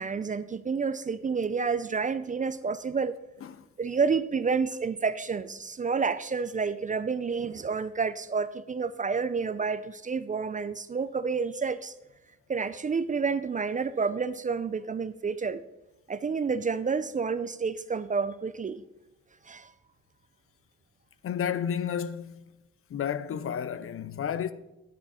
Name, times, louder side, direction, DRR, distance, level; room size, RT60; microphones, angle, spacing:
voice 1, 0.0-3.1 3.8-11.9 12.5-15.6 16.1-18.8 19.5-19.7, right 5 dB, 25° right, 0.4 m, -29 dB
voice 2, 21.2-22.4 22.9-24.5, left 8 dB, 45° left, 0.6 m, -31 dB
10.5 x 9.0 x 4.2 m
cardioid pair, 90°, 30 cm